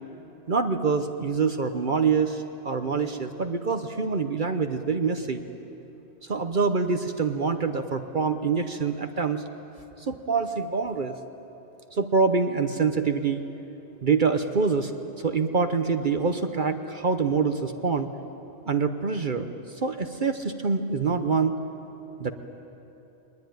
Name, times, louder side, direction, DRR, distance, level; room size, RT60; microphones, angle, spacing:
voice 1, 0.5-5.4 6.3-9.4 10.1-11.2 11.9-13.4 14.0-14.9 15.2-18.1 18.7-19.5 19.8-21.6 22.2-22.3, right 5 dB, 45° right, 7 dB, 1.0 m, -25 dB
23.0 x 20.5 x 9.3 m, 3.0 s
omnidirectional pair, 1.2 m